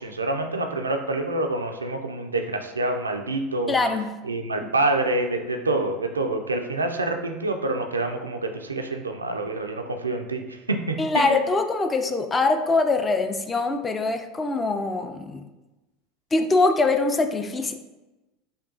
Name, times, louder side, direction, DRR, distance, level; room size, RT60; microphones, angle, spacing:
voice 1, 0.0-3.7 4.2-11.4, right 2 dB, 85° right, 5 dB, 0.3 m, -27 dB
voice 2, 3.7-4.1 4.6-4.7 11.0-15.4 16.3-17.7, left 3 dB, 20° left, 6 dB, 0.4 m, -23 dB
5.1 x 2.3 x 2.5 m, 1.1 s
figure-of-eight pair, 75°, 0 cm